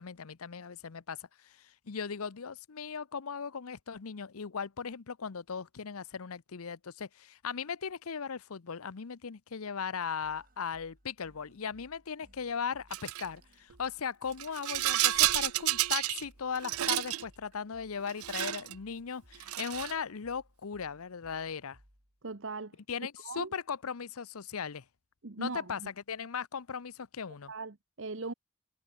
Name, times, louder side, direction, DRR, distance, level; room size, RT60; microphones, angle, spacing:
voice 1, 0.0-21.8 22.9-24.8 25.4-25.8 26.1-27.5, left 6 dB, 85° left, 0.7 m, -38 dB
sound 1, 10.2-22.2, equal, 40° right, 7.0 m, -63 dB
Rattle, 12.9-13.3 14.3-16.2 16.6-17.2 18.1-18.7 19.4-20.0, right 15 dB, 85° right, 0.5 m, -30 dB
voice 2, 22.2-22.8 23.2-23.5 25.2-25.9 27.5-28.3, right 3 dB, 60° right, 1.0 m, -39 dB
head